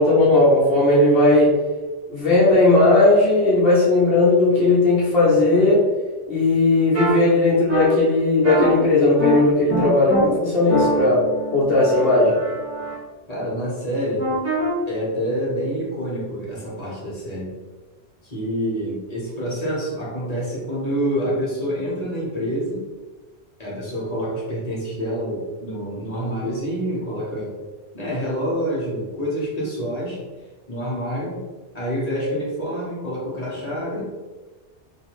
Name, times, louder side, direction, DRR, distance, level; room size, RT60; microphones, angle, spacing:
voice 1, 0.0-1.5 2.1-5.8 6.3-11.2 11.5-12.4, left 2 dB, 60° left, -6 dB, 1.1 m, -16 dB
sound 1, 6.9-7.1 7.7-7.8 8.4-8.7 9.2-9.3 9.7-10.2 10.7-12.9 14.2-14.7, right 2 dB, 15° right, 1.2 m, -25 dB
voice 2, 13.3-14.3 14.9-17.5 18.2-22.8 23.6-27.5 27.9-30.2 30.7-31.4 31.7-34.0, equal, 35° left, -6 dB, 1.2 m, -27 dB
3.3 x 2.9 x 3.0 m, 1.3 s
omnidirectional pair, 1.2 m